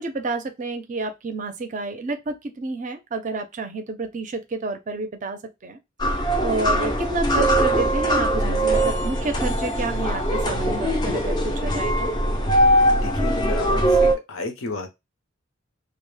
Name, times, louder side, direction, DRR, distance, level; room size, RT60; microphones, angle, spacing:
voice 1, 0.0-12.1, right 3 dB, 35° right, 0.4 m, -30 dB
sound 1, 6.0-14.1, right 1 dB, 20° left, 0.4 m, -21 dB
voice 2, 12.9-14.9, left 2 dB, 80° left, 0.6 m, -32 dB
2.1 x 2.0 x 3.1 m
head